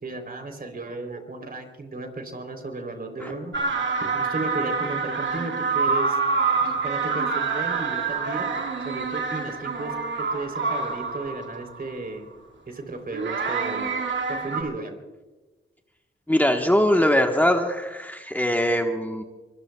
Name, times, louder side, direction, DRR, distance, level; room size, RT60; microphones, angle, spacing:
voice 1, 0.0-3.5 4.0-6.2 6.6-8.5 8.8-12.3 12.7-13.9 14.3-15.0, right 2 dB, 45° right, 5 dB, 3.5 m, -34 dB
sound 1, 3.5-11.9 13.1-14.6, right 4 dB, 70° right, 2.1 m, -27 dB
voice 2, 16.3-19.2, equal, 10° left, 3 dB, 1.3 m, -21 dB
24.5 x 22.0 x 2.3 m, 1.2 s
cardioid pair, 65°, 20 cm